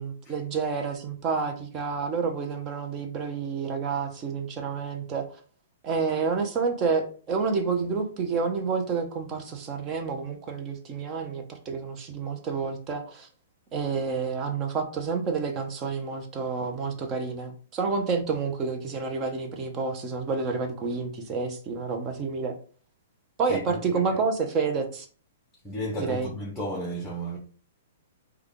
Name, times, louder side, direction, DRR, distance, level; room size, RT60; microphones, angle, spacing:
voice 1, 0.0-5.3 5.8-13.3 13.7-22.6 23.4-25.1 26.0-26.3, right 5 dB, 30° right, 0.7 m, -29 dB
voice 2, 23.5-24.0 25.6-27.4, right 1 dB, 5° left, 0.9 m, -33 dB
3.4 x 2.3 x 3.6 m
hypercardioid pair, 135°, 0 cm